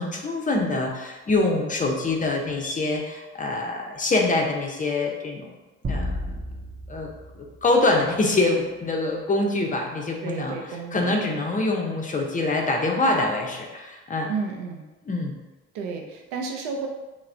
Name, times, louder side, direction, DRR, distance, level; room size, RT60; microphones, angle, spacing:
voice 1, 0.0-5.5 5.9-6.2 6.9-7.1 7.3-10.5 10.9-14.3 15.1-15.3, left 2 dB, 25° left, 1 dB, 0.5 m, -25 dB
sound 1, 5.8-8.4, equal, 30° right, 0.7 m, -33 dB
voice 2, 10.2-11.7 14.3-14.9 15.7-16.9, right 5 dB, 80° right, 2 dB, 0.5 m, -32 dB
2.3 x 2.1 x 3.2 m, 1.1 s
hypercardioid pair, 60°, 32 cm